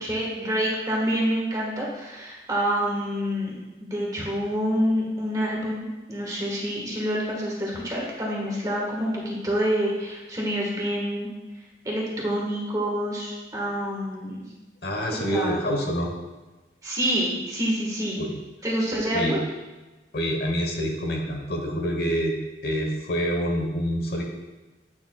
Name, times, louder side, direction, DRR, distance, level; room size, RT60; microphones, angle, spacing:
voice 1, 0.0-3.5 3.8-11.3 11.8-14.4 15.3-15.6 16.8-18.2 18.6-19.4, equal, 20° right, -3 dB, 1.4 m, -27 dB
voice 2, 14.8-16.1 18.2-18.4 19.1-19.4 20.1-22.4 22.6-24.2, equal, 60° left, 1 dB, 1.0 m, -26 dB
8.8 x 6.4 x 2.3 m, 1.2 s
head